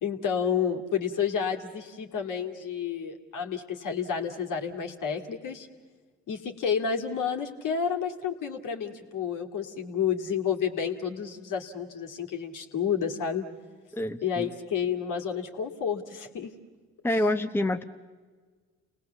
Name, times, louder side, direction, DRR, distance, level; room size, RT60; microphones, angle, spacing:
voice 1, 0.0-5.7 6.3-13.4 14.2-16.5, left 7 dB, 60° left, 2 dB, 2.3 m, -30 dB
voice 2, 13.9-14.5 17.0-17.8, left 1 dB, 5° left, 7 dB, 1.0 m, -27 dB
30.0 x 19.0 x 7.0 m, 1.4 s
hypercardioid pair, 50°, 35 cm